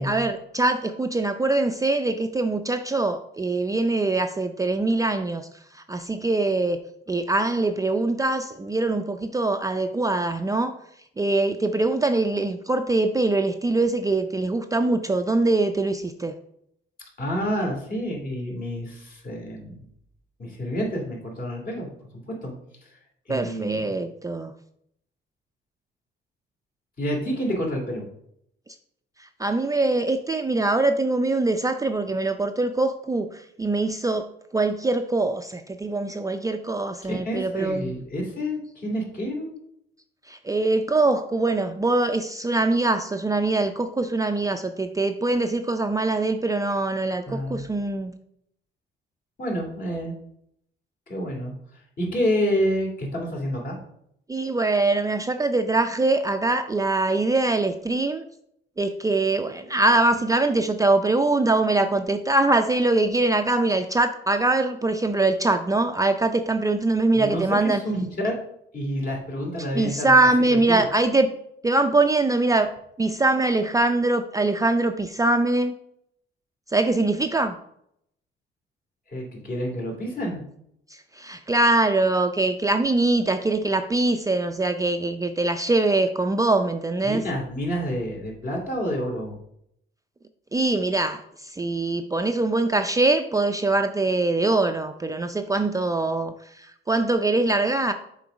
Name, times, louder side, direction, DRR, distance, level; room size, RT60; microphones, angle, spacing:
voice 1, 0.0-5.5 5.7-6.8 7.1-10.8 11.2-16.3 23.3-24.5 29.4-34.3 34.5-37.9 40.3-48.1 54.3-58.2 58.8-67.8 69.8-71.3 71.6-72.7 73.0-75.7 76.7-77.6 81.2-87.3 90.5-97.9, right 2 dB, 15° right, 6 dB, 0.4 m, -23 dB
voice 2, 17.2-19.9 20.4-21.9 22.1-22.5 23.3-23.9 27.0-28.0 37.0-39.6 47.3-47.6 49.4-50.2 51.1-53.8 67.1-68.4 68.7-70.8 79.1-80.4 87.0-89.4, equal, 45° left, -1 dB, 2.7 m, -29 dB
7.0 x 3.8 x 5.1 m, 0.73 s
cardioid pair, 90°, 20 cm